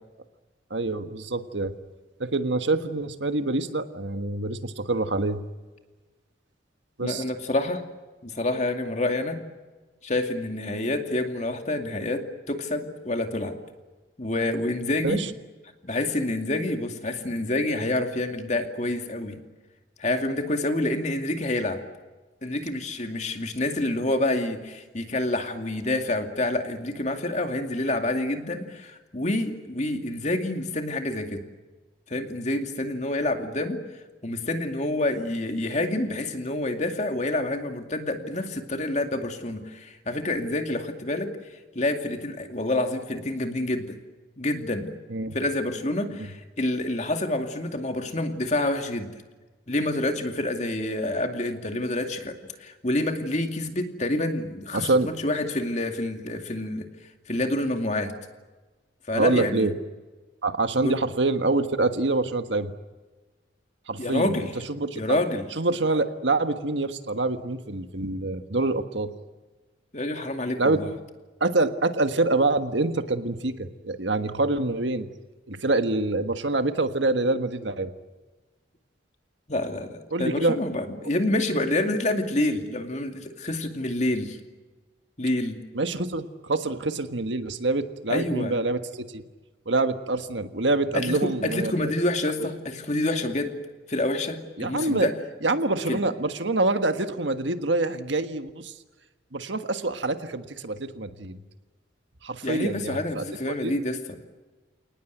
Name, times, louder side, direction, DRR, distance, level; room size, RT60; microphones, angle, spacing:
voice 1, 0.7-1.7 2.2-5.4 7.0-7.2 15.0-15.3 45.1-45.3 46.2-46.3 54.7-55.1 59.1-59.7 60.4-62.7 63.9-64.3 64.7-65.2 65.5-69.1 70.6-70.8 71.4-75.1 75.5-77.9 80.1-80.6 81.0-81.1 85.7-89.2 89.6-91.9 92.4-92.5 94.6-95.1 95.4-98.7 99.3-101.4 102.2-103.8, right 2 dB, 75° right, 9 dB, 1.5 m, -26 dB
voice 2, 7.0-7.8 8.2-9.4 10.0-13.5 14.2-15.2 15.8-19.4 20.0-21.8 22.4-31.4 32.1-33.8 34.2-41.3 41.7-44.0 44.4-44.9 45.3-49.1 49.7-56.9 57.3-58.1 59.1-59.7 60.8-61.0 64.0-64.5 64.9-65.5 69.9-70.9 79.5-84.4 85.2-85.6 88.1-88.5 90.9-93.6 93.9-95.1 95.9-96.0 102.4-104.2, left 1 dB, 35° left, 5 dB, 2.4 m, -27 dB
29.0 x 19.0 x 9.2 m, 1.3 s
head